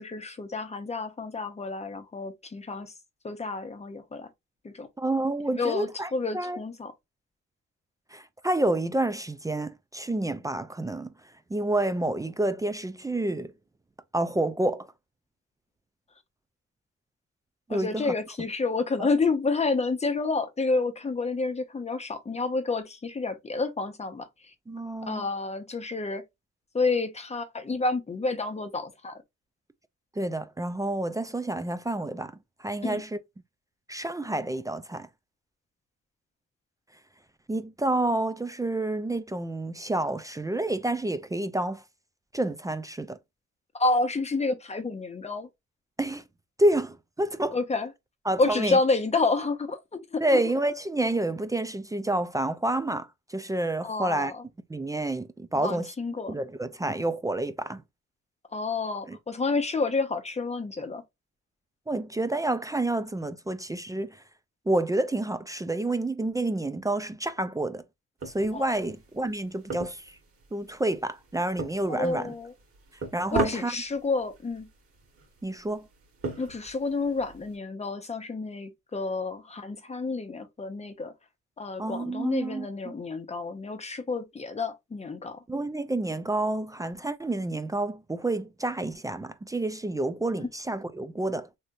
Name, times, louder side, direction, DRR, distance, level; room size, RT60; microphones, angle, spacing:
voice 1, 0.0-2.9 3.2-4.3 4.6-4.9 5.5-6.9 17.7-24.3 25.0-26.2 26.7-29.1 32.8-33.0 43.7-45.5 47.5-47.9 48.4-50.4 53.8-54.4 55.5-56.3 58.5-61.0 68.5-68.7 71.9-72.5 73.3-74.7 76.4-81.1 81.6-85.4 90.4-90.5, left 3 dB, 20° left, 0.7 m, -29 dB
voice 2, 5.0-6.6 8.1-11.1 11.5-13.5 14.1-14.9 17.7-18.1 19.0-19.1 24.7-25.3 30.2-33.2 33.9-35.1 37.5-41.8 42.3-43.2 46.0-46.2 46.6-47.6 48.3-48.8 50.2-54.3 54.7-55.9 56.3-57.8 59.1-59.2 61.9-64.2 64.7-67.8 68.3-70.2 70.5-72.3 73.1-73.7 75.4-75.9 81.8-82.9 85.5-91.5, right 2 dB, 10° right, 0.3 m, -29 dB
sound 1, 68.2-77.6, right 3 dB, 45° right, 1.5 m, -38 dB
3.3 x 2.8 x 2.5 m
cardioid pair, 90°, 30 cm